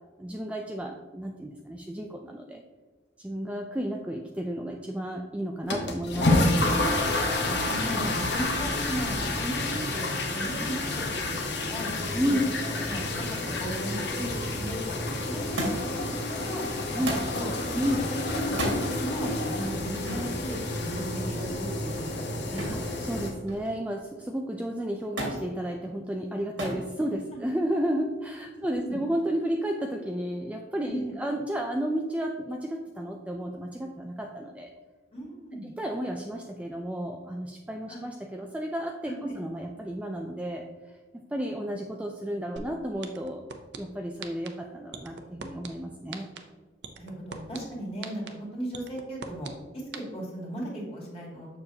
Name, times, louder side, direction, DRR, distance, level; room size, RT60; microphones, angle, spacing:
voice 1, 0.2-2.6 3.2-6.3 12.1-12.4 16.9-17.2 17.7-18.1 22.7-34.7 35.6-40.6 41.1-43.4 43.8-46.3, equal, 5° right, 2 dB, 0.3 m, -32 dB
sound 1, 5.7-23.3, left 2 dB, 65° left, 1.0 m, -29 dB
voice 2, 7.4-11.4 11.7-11.9 12.3-13.0 13.5-16.6 16.9-17.0 17.3-17.5 17.9-18.0 18.5-18.7 19.0-22.7 28.5-29.0 30.8-31.2 35.1-35.7 37.9-38.0 39.0-39.4 47.0-51.5, right 1 dB, 30° left, -4 dB, 2.2 m, -36 dB
Thump thud, 15.6-16.0 17.0-17.4 18.5-18.8 20.0-20.3 22.6-22.9 23.2-23.8 25.2-25.4 26.6-26.9 27.8-28.3 29.3-29.4, right 1 dB, 90° right, 2.0 m, -32 dB
sound 2, 42.6-42.7 43.0-43.8 44.2-44.5 44.9-45.7 46.1-46.4 46.8-47.6 48.0-48.3 48.7-49.5 49.9-50.0, right 6 dB, 65° right, 0.6 m, -38 dB
6.8 x 6.6 x 2.8 m, 1.3 s
head